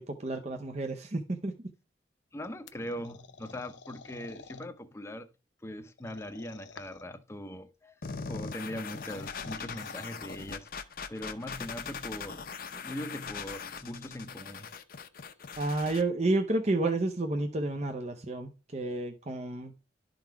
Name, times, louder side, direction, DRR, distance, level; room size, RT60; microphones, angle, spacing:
voice 1, 0.0-1.5 15.6-19.7, right 2 dB, 35° right, 0.7 m, -30 dB
voice 2, 2.3-5.3 5.6-8.0 8.3-10.7 11.1-14.7, left 1 dB, 15° left, 0.7 m, -41 dB
sound 1, 2.7-4.7 6.0-7.1 8.6-10.1, left 5 dB, 85° left, 0.7 m, -50 dB
sound 2, 8.0-16.0, left 5 dB, 50° left, 0.7 m, -41 dB
11.5 x 3.9 x 4.6 m
head